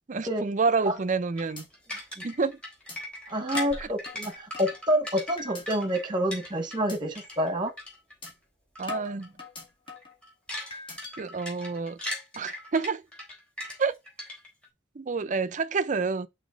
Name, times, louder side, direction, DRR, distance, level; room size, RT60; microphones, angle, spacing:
voice 1, 0.1-1.6 2.2-2.6 3.8-3.9 8.8-9.3 11.2-12.0 12.4-13.0 13.8-13.9 15.0-16.3, right 4 dB, 45° right, 0.5 m, -28 dB
sound 1, 1.0-1.2 1.6-1.7 2.1-2.2 2.9-3.0 3.5-4.8 5.4-5.8 6.2-6.5 6.9-7.0 7.4-7.6 8.2-8.3 8.9-10.1 10.7-11.1, left 4 dB, 30° left, 1.9 m, -40 dB
sound 2, 1.4-6.9 7.2-8.3 8.8-9.0 9.2-9.4 9.9-14.7, left 1 dB, 5° left, 3.5 m, -39 dB
voice 2, 3.3-7.7, equal, 25° right, 1.3 m, -28 dB
6.2 x 4.0 x 5.1 m
head